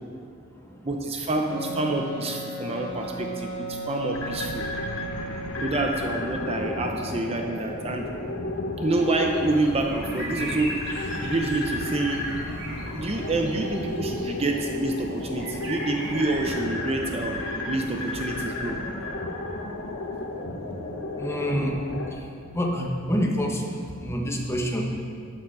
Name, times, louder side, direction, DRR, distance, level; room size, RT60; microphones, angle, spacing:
voice 1, 0.8-4.7 5.6-8.1 8.8-10.7 11.2-12.3 12.9-18.8, right 2 dB, 30° right, 2 dB, 0.7 m, -27 dB
Wind instrument woodwind instrument, 1.5-6.1, right 1 dB, 60° left, 2.6 m, -36 dB
sound 1, 4.1-22.1, left 2 dB, 85° left, 1.3 m, -33 dB
sound 2, 8.9-16.5, right 1 dB, 55° right, 2.1 m, -39 dB
voice 2, 21.2-21.8 22.1-24.9, equal, 15° left, 0 dB, 1.3 m, -28 dB
13.0 x 9.0 x 4.7 m, 2.3 s
head